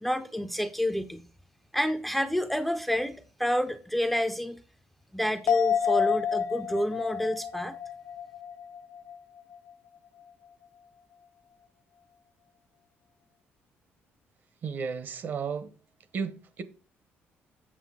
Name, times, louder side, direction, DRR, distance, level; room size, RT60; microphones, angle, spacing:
voice 1, 0.0-1.2 1.7-4.6 5.1-7.8, equal, 5° left, 0.4 m, -29 dB
sound 1, 5.5-9.2 9.5-9.6, left 8 dB, 80° left, 0.6 m, -29 dB
voice 2, 14.6-15.7 16.1-16.6, right 6 dB, 45° right, 0.7 m, -33 dB
7.3 x 6.7 x 3.6 m
cardioid pair, 160°, 5 cm